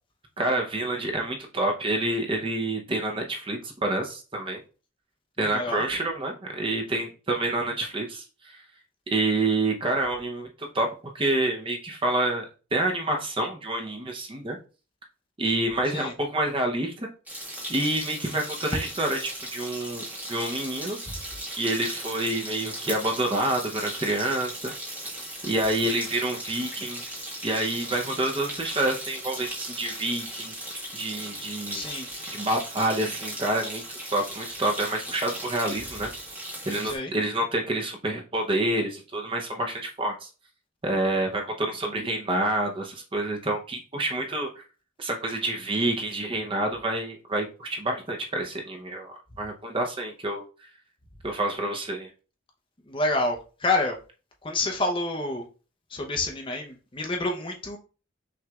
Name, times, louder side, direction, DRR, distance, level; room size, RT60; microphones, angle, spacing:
voice 1, 0.4-4.6 5.4-8.6 9.1-14.6 15.4-17.1 17.7-20.0 20.3-21.0 21.5-24.7 25.4-27.0 27.4-30.5 30.9-31.8 32.3-33.8 34.1-36.1 36.7-40.3 40.8-44.5 45.0-50.4 51.2-52.1, right 1 dB, 25° right, 2 dB, 0.6 m, -28 dB
voice 2, 5.4-5.8 15.9-16.1 31.7-32.1 36.8-37.1 52.9-54.0 54.4-55.4 55.9-57.8, left 2 dB, 25° left, 2 dB, 0.6 m, -28 dB
sound 1, 17.3-37.0, right 1 dB, 10° right, 1.2 m, -37 dB
5.9 x 3.1 x 2.3 m, 0.35 s
head